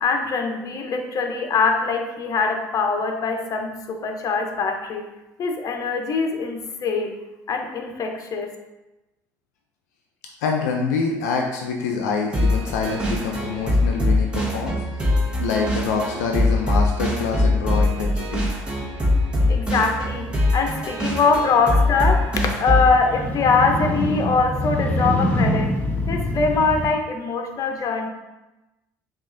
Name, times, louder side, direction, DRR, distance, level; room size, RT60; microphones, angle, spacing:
voice 1, 0.0-5.1 5.4-7.1 7.5-8.5 19.5-20.3 20.5-25.7 26.1-28.1, left 4 dB, 45° left, 4 dB, 0.7 m, -22 dB
voice 2, 10.4-15.1 15.4-18.5 20.5-20.6, left 5 dB, 85° left, 1 dB, 0.4 m, -26 dB
sound 1, 12.3-23.0, left 1 dB, 15° right, 1.1 m, -22 dB
Motorcycle, 19.8-26.9, left 1 dB, 20° left, 0.9 m, -26 dB
5.7 x 2.4 x 2.6 m, 1.0 s
hypercardioid pair, 70°, 9 cm